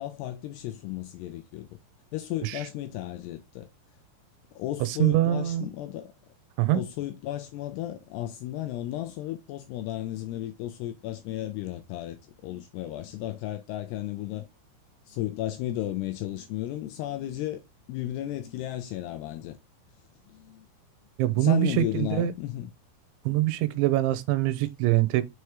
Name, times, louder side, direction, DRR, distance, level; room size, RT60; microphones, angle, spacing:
voice 1, 0.0-1.8 2.1-3.7 4.6-6.1 6.7-14.5 15.1-17.6 17.9-19.6 20.3-20.7 21.4-22.7, left 13 dB, 80° left, 2.5 m, -34 dB
voice 2, 4.8-5.7 6.6-6.8 21.2-22.3 23.3-25.2, right 14 dB, 85° right, 3.0 m, -24 dB
6.8 x 4.7 x 3.1 m
omnidirectional pair, 5.3 m